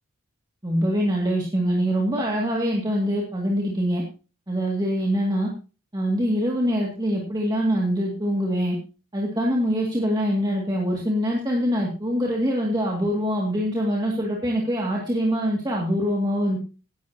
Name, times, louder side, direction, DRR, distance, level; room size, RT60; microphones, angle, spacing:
voice 1, 0.6-4.0 4.5-5.5 5.9-8.8 9.1-16.6, equal, 20° right, -2 dB, 2.1 m, -24 dB
16.0 x 11.0 x 2.8 m, 0.34 s
head